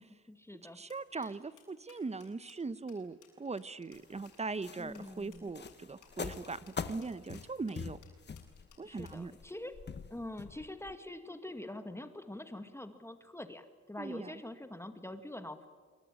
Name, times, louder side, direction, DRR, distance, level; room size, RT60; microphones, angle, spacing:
voice 1, 0.0-0.8 1.1-1.3 4.8-5.5 8.8-9.7 10.1-15.7, left 1 dB, 10° left, 8 dB, 1.9 m, -45 dB
voice 2, 0.7-8.0 8.8-9.3 14.0-14.3, right 4 dB, 20° right, 15 dB, 1.1 m, -40 dB
sound 1, 0.9-9.3, left 9 dB, 85° left, 7.8 m, -63 dB
sound 2, 3.9-10.9, left 5 dB, 35° left, 1.7 m, -44 dB
26.0 x 24.0 x 9.0 m, 1.5 s
cardioid pair, 90°, 30 cm